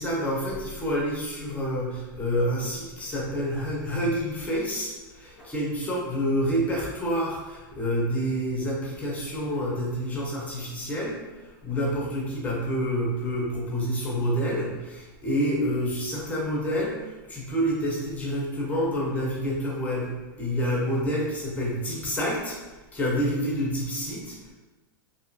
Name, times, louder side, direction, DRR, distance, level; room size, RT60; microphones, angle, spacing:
voice 1, 0.0-24.5, equal, 10° left, -4 dB, 0.5 m, -28 dB
2.9 x 2.5 x 2.5 m, 1.2 s
supercardioid pair, 160°, 12 cm